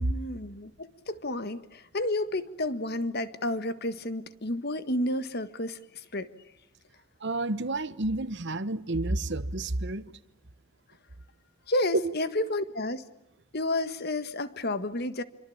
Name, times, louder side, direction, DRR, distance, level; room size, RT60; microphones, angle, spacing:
voice 1, 0.0-6.3 11.7-13.0 13.5-15.2, left 1 dB, 45° left, 1.6 m, -31 dB
voice 2, 7.2-10.1 11.9-12.0, right 2 dB, 55° right, 1.1 m, -29 dB
27.5 x 25.0 x 8.7 m
head